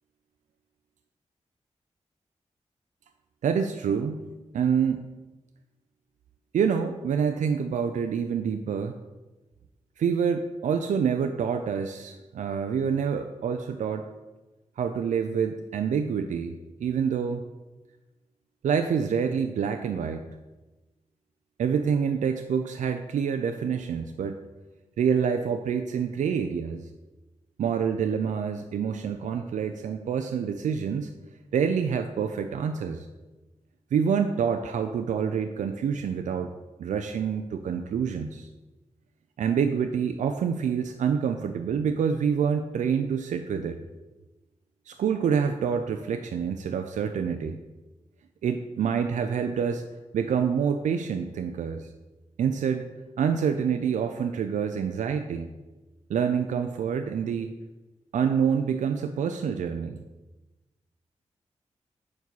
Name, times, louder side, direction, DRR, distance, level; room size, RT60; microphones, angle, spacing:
voice 1, 3.4-4.3 4.5-5.1 6.5-9.0 10.0-14.1 14.8-17.4 18.6-20.2 21.6-24.4 25.0-26.9 27.6-31.1 31.5-33.1 33.9-36.5 36.8-38.5 39.4-43.8 44.9-47.6 48.4-49.8 50.1-51.9 52.4-52.9 53.2-55.5 56.1-57.5 58.1-60.0, right 7 dB, 85° right, 6 dB, 0.4 m, -27 dB
5.3 x 4.7 x 6.1 m, 1.1 s
cardioid pair, 45°, 13 cm